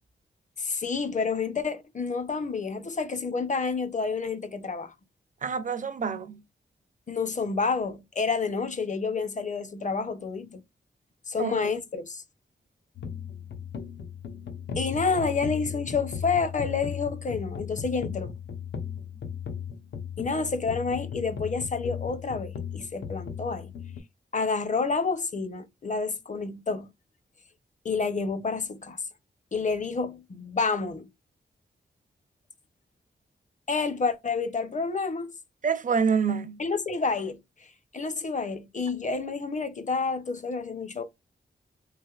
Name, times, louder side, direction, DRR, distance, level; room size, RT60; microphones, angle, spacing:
voice 1, 0.6-4.9 7.1-10.6 11.3-12.2 14.8-18.3 20.2-23.7 24.3-26.9 27.8-29.0 29.5-31.1 33.7-35.3 36.6-37.7 37.9-41.0, left 4 dB, 40° left, 0.7 m, -29 dB
voice 2, 5.4-6.4 11.4-11.7 35.6-36.6, right 6 dB, 45° right, 0.5 m, -27 dB
sound 1, 13.0-24.0, left 7 dB, 75° left, 0.7 m, -36 dB
3.3 x 2.9 x 2.3 m
cardioid pair, 75°, 19 cm